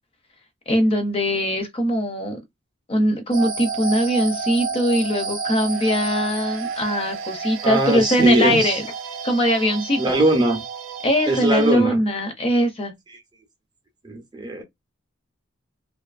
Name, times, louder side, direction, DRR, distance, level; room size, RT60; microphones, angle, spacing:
voice 1, 0.7-2.4 2.9-8.8 9.2-10.0 11.0-12.9, equal, 30° left, 0.5 m, -21 dB
sound 1, 3.3-11.7, right 5 dB, 85° right, 0.5 m, -31 dB
voice 2, 7.6-8.8 10.0-10.6 11.3-12.0 13.1-13.2 14.0-14.6, right 1 dB, 20° right, 0.5 m, -20 dB
2.5 x 2.4 x 2.4 m
head